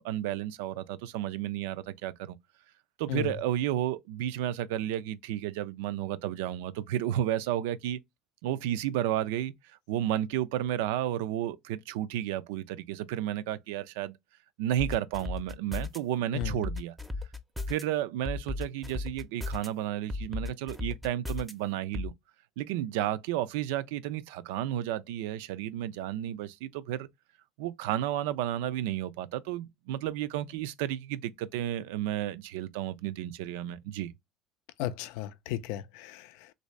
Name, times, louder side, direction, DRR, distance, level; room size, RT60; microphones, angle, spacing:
voice 1, 0.0-2.4 3.0-8.0 8.4-14.2 14.6-16.9 17.7-22.1 22.6-27.1 27.6-34.1, right 12 dB, 90° right, 0.3 m, -32 dB
sound 1, 14.8-16.0 16.4-17.8 18.3-19.7 20.1-21.5 21.9-22.1, left 3 dB, 5° right, 0.6 m, -35 dB
voice 2, 34.8-36.5, left 12 dB, 80° left, 0.4 m, -35 dB
3.2 x 2.7 x 3.1 m
supercardioid pair, 115°, 0 cm